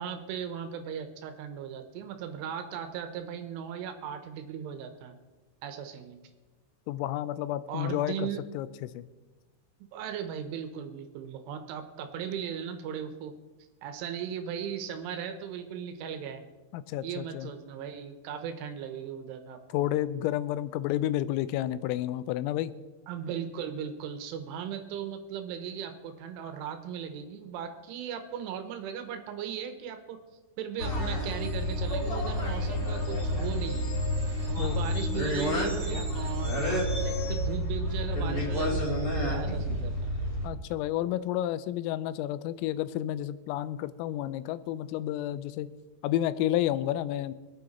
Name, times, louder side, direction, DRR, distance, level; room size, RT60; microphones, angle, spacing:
voice 1, 0.0-5.2 5.6-6.2 7.7-8.4 9.9-13.3 13.8-16.4 17.0-19.8 23.1-30.2 30.6-33.9 34.5-40.1, right 8 dB, 75° right, 8 dB, 3.3 m, -37 dB
voice 2, 6.9-8.3 8.5-9.0 16.7-17.5 19.7-22.7 34.6-34.8 40.4-45.7 46.0-47.3, left 13 dB, 85° left, 15 dB, 3.3 m, -30 dB
sound 1, 30.8-40.5, equal, 25° left, 3.6 m, -29 dB
24.0 x 8.9 x 4.2 m, 1.2 s
omnidirectional pair, 5.9 m